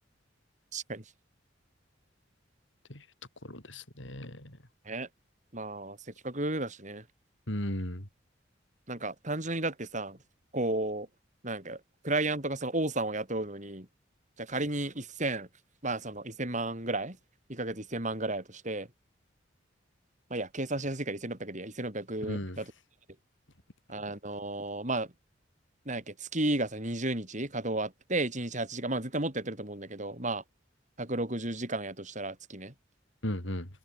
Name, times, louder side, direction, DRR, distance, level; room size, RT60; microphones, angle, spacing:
voice 1, 0.7-1.0 4.9-5.1 5.5-6.0 6.2-7.0 8.9-10.2 10.5-11.1 11.4-13.9 14.4-15.5 15.8-17.2 17.5-18.9 20.3-22.7 23.9-25.1 25.9-30.4 31.0-32.7, right 2 dB, 40° right, 6.2 m, -33 dB
voice 2, 3.4-4.6 7.5-8.1 22.2-22.6 33.2-33.7, left 1 dB, 75° left, 6.5 m, -36 dB
head